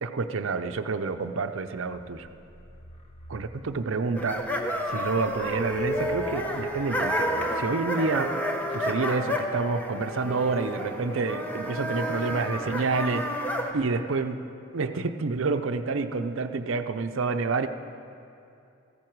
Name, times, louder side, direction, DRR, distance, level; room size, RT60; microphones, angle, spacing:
voice 1, 0.0-2.3 3.3-4.5 4.9-8.4 8.7-13.3 13.7-17.7, right 4 dB, 70° right, 9 dB, 0.6 m, -28 dB
sound 1, 1.8-8.4, right 1 dB, 30° left, 1.1 m, -50 dB
sound 2, 4.2-13.7, equal, 10° left, 0.8 m, -30 dB
14.5 x 13.5 x 4.6 m, 2.6 s
head